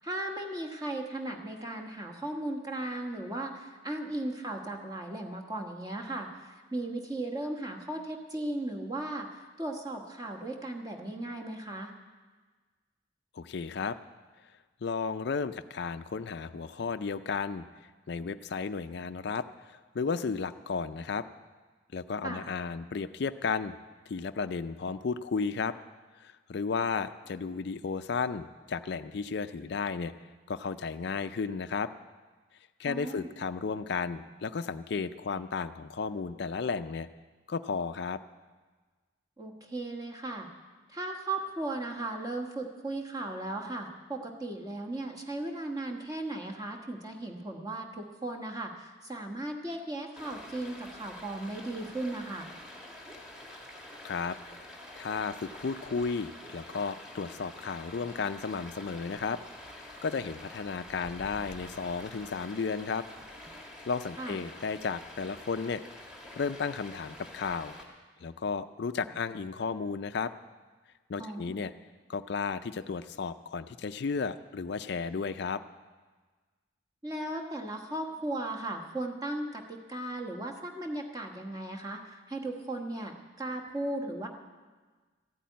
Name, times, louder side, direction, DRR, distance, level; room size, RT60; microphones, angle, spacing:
voice 1, 0.0-11.9 22.2-22.4 32.9-33.3 39.4-40.5 40.9-52.5 64.2-64.4 71.2-71.6 77.0-84.3, right 2 dB, 20° right, 2 dB, 1.3 m, -36 dB
voice 2, 13.3-14.0 14.8-21.2 21.9-23.8 24.1-25.8 26.2-30.1 30.5-31.9 32.8-37.1 37.5-38.2 54.0-54.4 55.0-59.4 60.0-63.1 63.9-65.8 66.4-67.7 68.2-70.3 71.1-71.7 72.1-75.6, left 5 dB, 55° left, 11 dB, 0.4 m, -33 dB
Stream, 50.2-67.8, left 1 dB, 5° right, 1.7 m, -47 dB
14.0 x 8.6 x 9.3 m, 1.4 s
head